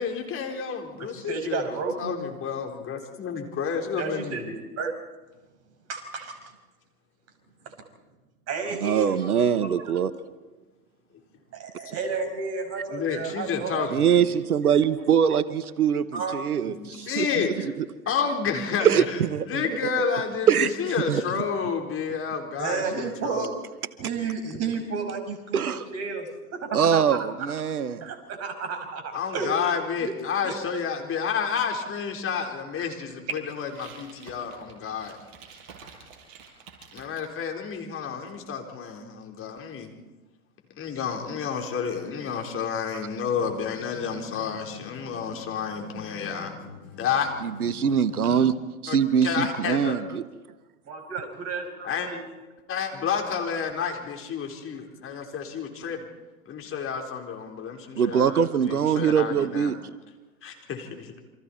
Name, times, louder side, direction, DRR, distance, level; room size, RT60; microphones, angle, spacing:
voice 1, 0.0-4.5 12.9-14.2 16.7-17.7 18.1-19.2 19.5-23.5 29.1-35.2 36.9-39.9 40.8-46.5 47.0-47.3 48.9-49.0 49.2-50.0 51.8-52.1 52.7-56.0 56.5-59.7 60.4-61.2, left 6 dB, 30° left, 3 dB, 4.3 m, -30 dB
voice 2, 1.0-2.2 4.0-4.9 5.9-6.4 7.7-7.8 8.5-9.1 11.5-13.9 16.1-16.3 22.6-23.5 24.0-27.0 27.5-27.6 28.0-29.5 30.0-30.1 30.4-30.5 32.8-32.9 50.9-52.2, right 5 dB, 35° right, 4 dB, 5.6 m, -32 dB
voice 3, 8.8-10.1 13.9-17.9 18.8-19.7 20.5-20.7 21.1-21.2 25.5-25.8 26.7-28.0 47.4-48.5 48.8-50.2 58.0-59.8, right 8 dB, 85° right, 15 dB, 1.1 m, -23 dB
sound 1, 33.6-37.3, right 6 dB, 55° right, 5.9 m, -49 dB
sound 2, 43.4-48.7, left 7 dB, 70° left, 5.4 m, -46 dB
28.5 x 26.0 x 4.4 m, 1.2 s
hypercardioid pair, 100°, 44 cm